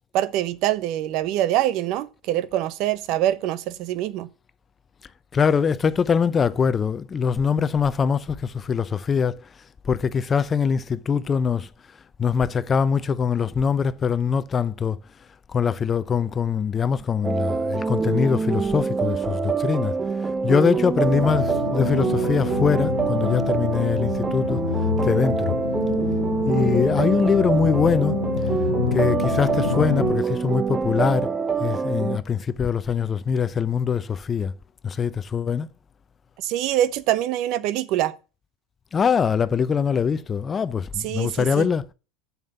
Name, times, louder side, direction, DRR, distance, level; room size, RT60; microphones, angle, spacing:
voice 1, 0.1-4.3 36.4-38.1 41.0-41.7, right 13 dB, 55° right, 0.9 m, -24 dB
voice 2, 5.3-9.5 9.8-11.7 12.2-15.0 15.5-20.0 20.4-24.6 25.0-25.4 26.4-28.2 28.9-31.3 31.6-34.5 34.8-35.7 38.9-41.9, left 6 dB, 25° left, 0.7 m, -23 dB
sound 1, 17.2-32.2, right 5 dB, 20° right, 0.8 m, -25 dB
sound 2, 21.0-30.2, left 10 dB, 90° left, 0.6 m, -28 dB
7.3 x 7.2 x 6.8 m
hypercardioid pair, 105°, 0 cm